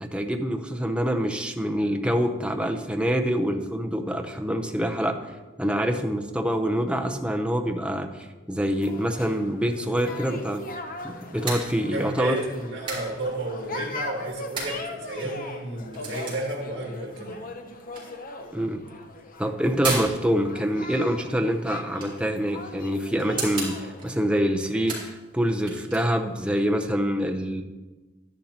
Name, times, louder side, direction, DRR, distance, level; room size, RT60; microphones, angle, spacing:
voice 1, 0.0-5.2 5.6-8.1 8.5-10.6 11.0-12.4 18.5-18.8 19.4-27.6, equal, 5° right, 4 dB, 0.7 m, -25 dB
sound 1, 8.7-24.1, left 2 dB, 50° left, 0.8 m, -40 dB
sound 2, 10.1-26.4, right 3 dB, 30° right, 3.8 m, -39 dB
voice 2, 11.9-17.4, right 1 dB, 85° right, -2 dB, 1.6 m, -32 dB
11.5 x 11.0 x 2.9 m, 1.2 s
head